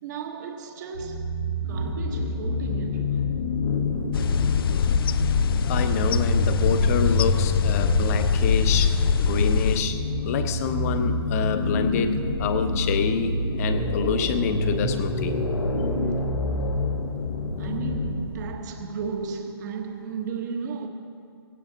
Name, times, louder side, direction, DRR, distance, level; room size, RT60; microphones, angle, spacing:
voice 1, 0.0-3.6 16.0-16.5 17.6-20.9, right 5 dB, 45° right, 1.2 m, -35 dB
sound 1, 0.9-18.3, left 1 dB, 80° left, 2.0 m, -27 dB
sound 2, 4.1-9.8, left 7 dB, 60° left, 0.4 m, -23 dB
voice 2, 5.7-10.0 10.2-15.4, left 6 dB, 35° left, 1.1 m, -27 dB
17.0 x 16.5 x 4.0 m
hypercardioid pair, 145°, 13 cm